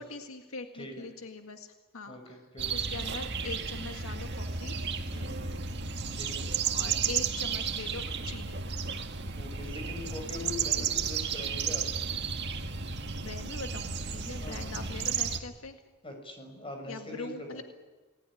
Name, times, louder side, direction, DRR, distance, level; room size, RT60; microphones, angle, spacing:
voice 1, 0.0-2.4 2.7-4.8 6.7-8.6 10.8-10.9 13.2-15.8 16.9-17.6, left 3 dB, 80° left, 5 dB, 1.9 m, -42 dB
voice 2, 0.7-1.1 2.1-2.7 5.1-5.5 6.1-6.5 9.3-11.9 14.3-14.8 16.0-17.6, left 2 dB, 25° left, 4 dB, 6.2 m, -42 dB
sound 1, 2.6-15.4, right 6 dB, 55° right, 1.9 m, -33 dB
29.0 x 20.0 x 10.0 m, 1.3 s
head